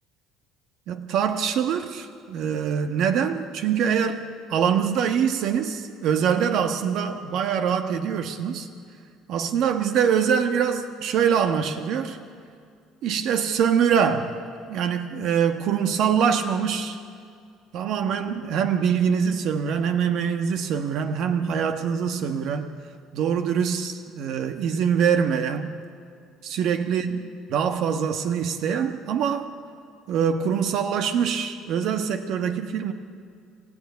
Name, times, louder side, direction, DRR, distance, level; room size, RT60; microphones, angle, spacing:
voice 1, 0.9-4.2 4.5-8.7 9.3-12.2 13.0-14.4 14.7-17.0 17.7-22.7 23.1-25.7 26.4-27.2 27.5-29.5 30.1-32.9, right 7 dB, 65° right, 7 dB, 1.2 m, -24 dB
26.0 x 14.5 x 9.5 m, 2.3 s
cardioid pair, 105°, 0 cm